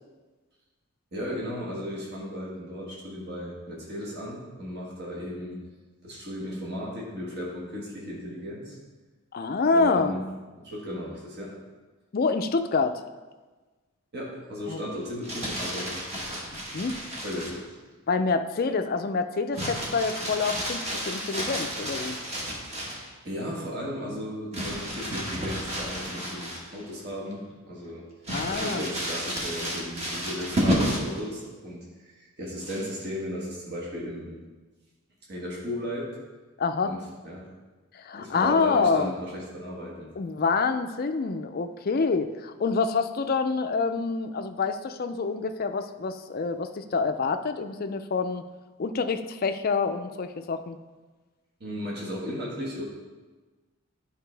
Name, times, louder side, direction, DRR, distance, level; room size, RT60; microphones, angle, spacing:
voice 1, 1.1-5.6 6.0-8.8 9.7-10.2 10.6-11.6 14.1-16.4 17.2-17.8 23.2-28.0 28.5-34.4 35.3-36.1 36.8-37.5 38.2-40.1 51.6-52.8, equal, 50° right, -4 dB, 1.5 m, -35 dB
voice 2, 9.3-10.2 12.1-13.0 14.7-14.8 16.7-17.0 18.1-22.2 28.3-28.8 36.6-36.9 37.9-39.1 40.2-48.4 48.8-50.8, left 4 dB, 45° left, 8 dB, 0.4 m, -27 dB
Crumpling crinkling, 15.0-17.6 19.5-23.1 24.5-26.9 27.3-27.4 28.2-31.2 32.6-33.1, equal, 30° right, 1.3 m, -31 dB
10.0 x 5.0 x 3.3 m, 1.3 s
head